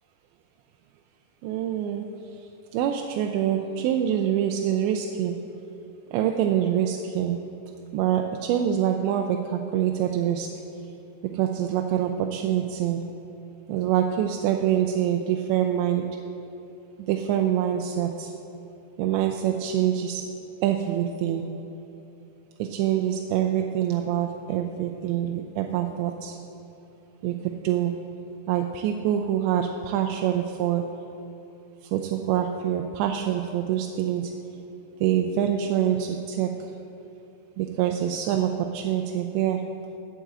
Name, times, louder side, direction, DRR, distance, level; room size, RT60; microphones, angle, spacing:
voice 1, 1.4-2.0 2.3-2.4 2.7-5.4 6.1-7.4 7.9-10.5 11.3-13.0 13.7-16.1 17.1-18.3 19.0-20.2 20.6-21.5 22.6-26.4 27.2-27.9 28.5-30.9 31.8-34.3 35.0-36.7 37.6-39.6, right 10 dB, 85° right, 3 dB, 2.8 m, -25 dB
9.4 x 6.7 x 7.6 m, 3.0 s
omnidirectional pair, 5.0 m